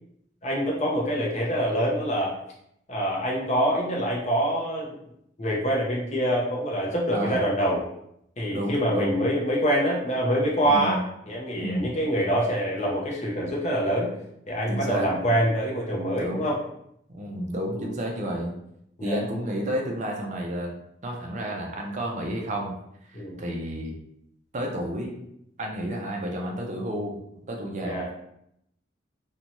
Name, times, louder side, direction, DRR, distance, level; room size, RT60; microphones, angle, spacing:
voice 1, 0.4-2.3 2.9-4.9 5.4-7.8 8.4-14.1 14.5-16.6 17.7-17.9 19.0-19.2 23.1-23.4 27.8-28.1, equal, 35° left, -3 dB, 0.6 m, -25 dB
voice 2, 8.5-9.2 10.6-11.0 11.6-11.9 14.7-15.1 16.2-16.5 17.1-18.5 19.0-20.7 21.0-22.8 23.0-24.0 24.5-25.2 25.6-28.1, right 1 dB, 40° right, 1 dB, 0.5 m, -31 dB
2.6 x 2.2 x 2.9 m, 0.76 s
head